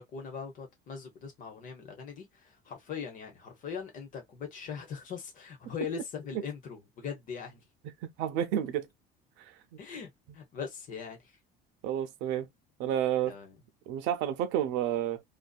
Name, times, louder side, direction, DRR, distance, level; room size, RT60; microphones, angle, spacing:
voice 1, 0.0-7.6 9.8-11.2 13.3-13.6, left 6 dB, 45° left, 1.0 m, -41 dB
voice 2, 8.0-8.9 11.8-12.5 12.8-13.3 13.9-15.2, right 10 dB, 85° right, 0.6 m, -30 dB
2.6 x 2.3 x 2.3 m
cardioid pair, 155°, 18 cm